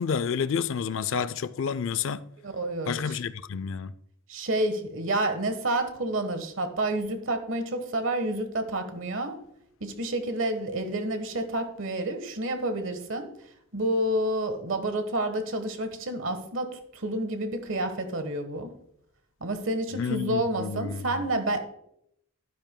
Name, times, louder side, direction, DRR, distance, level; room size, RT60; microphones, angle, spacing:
voice 1, 0.0-2.2 2.9-3.9 19.9-21.0, left 6 dB, 65° left, 0.4 m, -29 dB
voice 2, 2.4-3.2 4.3-9.4 9.8-13.3 13.7-18.7 19.4-21.6, right 1 dB, 65° right, 1.3 m, -29 dB
12.0 x 10.0 x 2.2 m
head